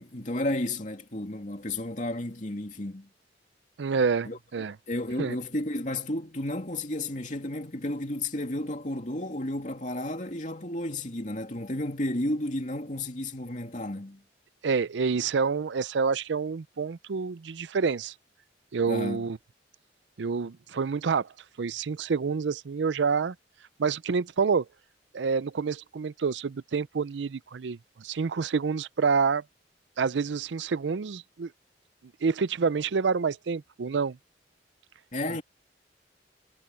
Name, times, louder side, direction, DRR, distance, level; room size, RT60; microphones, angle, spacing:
voice 1, 0.0-3.1 4.2-4.4 4.9-14.2 18.9-19.2 35.1-35.4, left 1 dB, 45° left, 2.8 m, -32 dB
voice 2, 3.8-4.8 5.2-5.4 14.6-18.1 18.7-19.4 20.2-21.3 21.6-23.4 23.8-24.7 25.1-29.4 30.0-31.5 32.2-34.2, right 5 dB, 80° right, 0.5 m, -28 dB
head